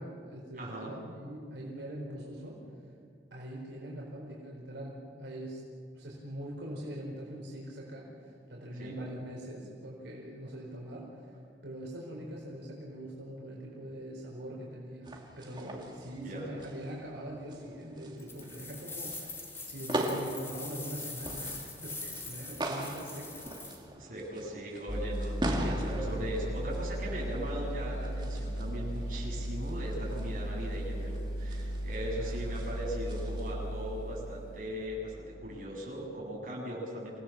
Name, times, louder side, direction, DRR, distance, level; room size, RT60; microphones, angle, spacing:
voice 1, 0.0-2.6 3.3-5.6 5.9-11.3 11.6-23.5 32.2-32.7, right 1 dB, 85° right, -3 dB, 4.3 m, -43 dB
voice 2, 0.6-0.9 8.7-9.0 15.6-15.7 16.2-16.5 22.0-22.1 24.0-31.1 31.4-37.2, equal, 45° right, -4 dB, 7.8 m, -39 dB
sound 1, 15.0-33.5, right 1 dB, 25° right, 2.2 m, -41 dB
sound 2, 18.2-23.8, left 3 dB, 15° left, 2.4 m, -43 dB
sound 3, 24.9-34.9, right 1 dB, 40° left, 2.6 m, -36 dB
27.5 x 17.5 x 7.4 m, 2.3 s
head